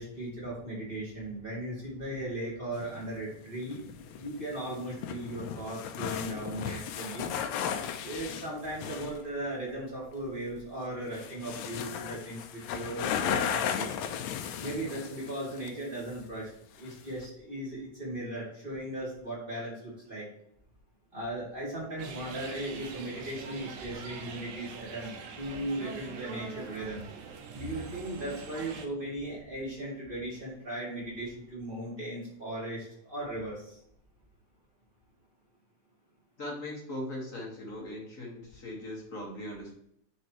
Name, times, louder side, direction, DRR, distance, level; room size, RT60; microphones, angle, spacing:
voice 1, 0.0-3.8 4.1-7.3 8.0-13.9 14.6-16.5 16.8-20.3 21.1-27.0 27.5-33.8, right 1 dB, 20° right, -6 dB, 2.8 m, -37 dB
sound 1, 2.7-9.2 10.5-10.6 11.1-15.8 16.1-16.2 16.9-17.2, left 8 dB, 80° left, 1.8 m, -35 dB
sound 2, 22.0-28.9, right 5 dB, 80° right, 2.3 m, -43 dB
voice 2, 36.4-39.7, left 1 dB, 35° left, -1 dB, 1.5 m, -39 dB
9.3 x 5.4 x 3.1 m, 0.72 s
omnidirectional pair, 3.5 m